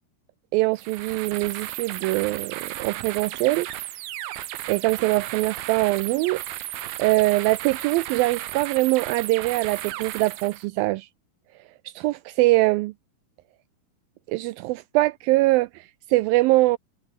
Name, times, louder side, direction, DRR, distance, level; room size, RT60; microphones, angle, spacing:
voice 1, 0.5-3.7 4.7-6.4 7.0-11.1 11.9-12.9 14.3-16.8, right 19 dB, 90° right, 2.0 m, -23 dB
sound 1, 0.8-10.7, right 14 dB, 70° right, 2.9 m, -34 dB
omnidirectional pair, 4.8 m